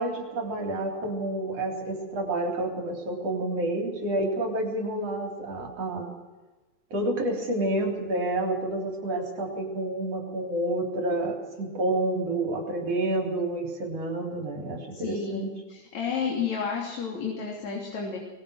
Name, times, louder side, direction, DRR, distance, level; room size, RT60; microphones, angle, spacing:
voice 1, 0.0-6.1 6.9-15.5, right 1 dB, 55° right, 1 dB, 4.7 m, -29 dB
voice 2, 14.9-18.2, left 5 dB, 65° left, -2 dB, 4.5 m, -31 dB
24.0 x 21.0 x 6.6 m, 1.2 s
omnidirectional pair, 3.5 m